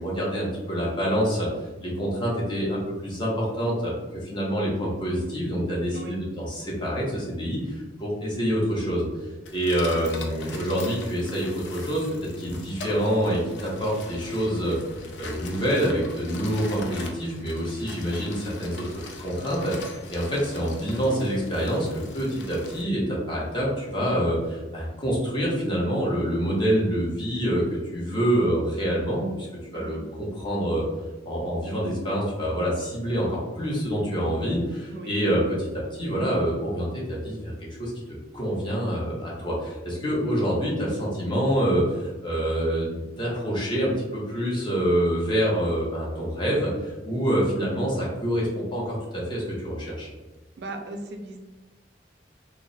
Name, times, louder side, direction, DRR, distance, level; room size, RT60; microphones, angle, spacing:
voice 1, 0.0-1.5 1.8-9.1 9.5-14.8 15.2-18.8 19.2-21.9 22.1-29.5 29.7-30.9 31.3-37.5 37.8-50.1, equal, 25° left, -4 dB, 0.8 m, -26 dB
Bicycling Onboard Trail, 9.4-22.8, left 3 dB, 80° left, 0.5 m, -41 dB
voice 2, 50.6-51.4, right 2 dB, 65° right, 4 dB, 0.4 m, -37 dB
2.3 x 2.0 x 3.8 m, 1.1 s
head